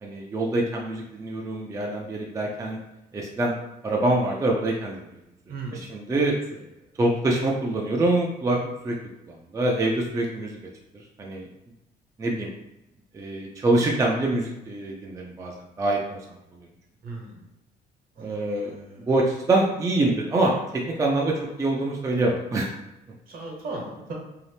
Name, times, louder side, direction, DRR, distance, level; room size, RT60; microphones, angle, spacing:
voice 1, 0.0-2.8 3.1-3.5 3.8-5.0 5.9-6.4 7.0-8.6 8.8-9.0 9.5-10.6 11.2-11.5 12.2-12.5 13.1-16.2 18.2-22.7, right 2 dB, 20° right, -2 dB, 0.4 m, -25 dB
voice 2, 5.5-5.8 6.5-6.6 17.0-17.4 18.1-19.1 23.3-24.1, right 3 dB, 60° right, -1 dB, 1.0 m, -37 dB
2.7 x 2.0 x 3.2 m, 0.93 s
cardioid pair, 110°, 17 cm